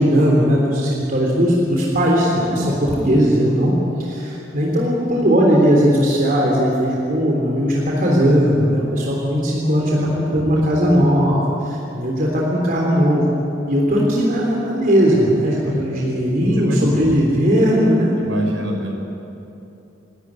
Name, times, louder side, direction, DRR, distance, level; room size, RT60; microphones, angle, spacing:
voice 1, 0.0-3.7 4.0-13.3 13.7-18.1, equal, 45° right, -3 dB, 3.6 m, -18 dB
voice 2, 16.4-16.8 18.2-19.0, equal, 70° right, 1 dB, 5.4 m, -25 dB
27.0 x 13.0 x 10.0 m, 2.9 s
head